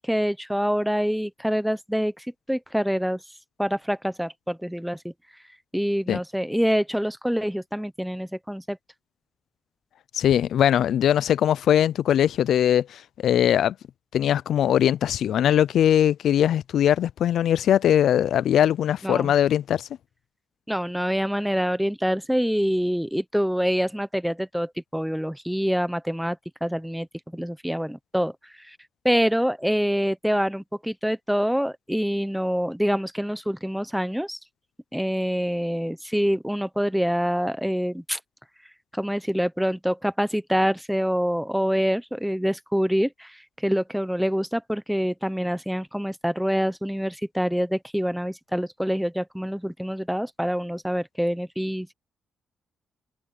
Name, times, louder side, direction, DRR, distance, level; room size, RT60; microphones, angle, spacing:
voice 1, 0.0-3.2 3.6-5.1 5.7-8.8 19.0-19.3 20.7-27.1 27.3-28.3 28.6-28.8 29.0-34.4 34.9-38.2 38.9-51.9, equal, ahead, 0.8 m, -26 dB
voice 2, 10.1-13.7 14.1-19.9, left 10 dB, 65° left, 0.3 m, -21 dB
cardioid pair, 140°, 0 cm